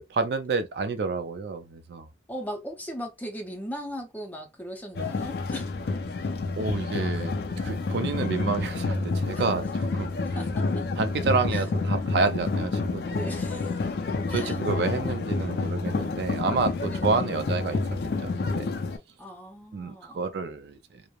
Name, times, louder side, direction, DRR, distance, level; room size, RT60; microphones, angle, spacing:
voice 1, 0.0-2.1 6.6-7.3 7.6-10.1 11.0-13.3 14.3-17.8 18.2-18.7 19.7-21.0, right 4 dB, 65° right, 0.4 m, -29 dB
voice 2, 2.3-5.7 9.3-9.4 10.2-10.9 11.5-11.7 13.1-13.8 14.2-14.6 16.8-17.2 19.2-20.2, equal, 10° left, 0.5 m, -38 dB
sound 1, 4.9-19.0, left 3 dB, 60° left, 0.4 m, -29 dB
3.0 x 2.0 x 2.3 m
head